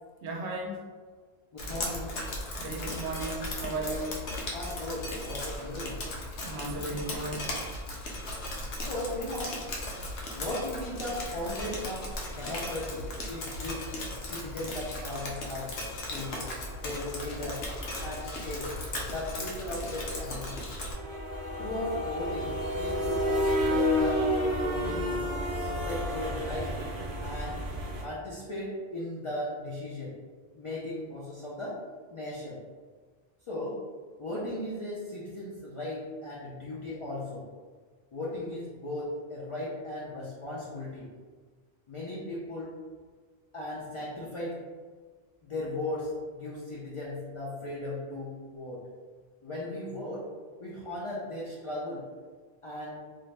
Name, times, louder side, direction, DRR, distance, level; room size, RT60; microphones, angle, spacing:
voice 1, 0.2-0.9 2.6-4.2 6.4-7.6, right 2 dB, 85° right, -1 dB, 0.9 m, -35 dB
voice 2, 1.5-2.2 3.8-4.0 4.5-6.0 8.8-9.6 10.3-13.9 14.2-15.7 16.0-16.4 16.8-17.6 18.0-18.7 19.0-20.6 21.6-24.2 24.6-25.3 25.7-26.8 27.2-27.6 28.0-30.1 30.5-31.8 32.1-32.6 33.5-33.8 34.2-37.5 38.1-41.1 41.9-42.8 43.5-44.6 45.4-48.8 49.4-50.3 50.6-52.1 52.6-53.0, left 1 dB, 55° left, -6 dB, 0.3 m, -37 dB
Drip, 1.6-20.9, left 1 dB, 75° left, 0.8 m, -37 dB
sound 1, 13.4-13.5 13.9-14.0 14.3-14.5 14.8-14.9 15.2-28.0, equal, 45° right, 0.5 m, -32 dB
2.6 x 2.0 x 3.1 m, 1.5 s
omnidirectional pair, 1.1 m